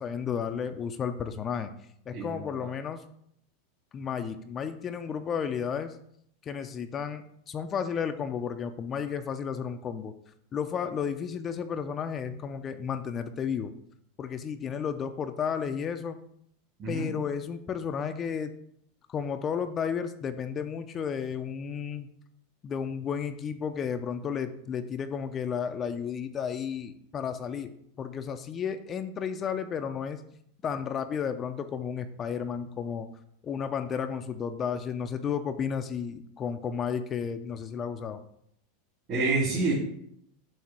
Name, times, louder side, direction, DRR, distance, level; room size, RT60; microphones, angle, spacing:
voice 1, 0.0-1.7 2.1-3.0 3.9-6.0 6.4-10.1 10.5-13.7 14.2-16.2 16.9-18.5 19.1-22.1 22.6-30.2 30.6-33.1 33.4-38.2, left 7 dB, 30° left, 8 dB, 0.5 m, -33 dB
voice 2, 16.8-17.1 39.1-39.7, right 3 dB, 40° right, -6 dB, 2.5 m, -27 dB
7.4 x 2.8 x 5.9 m, 0.71 s
hypercardioid pair, 110°, 0 cm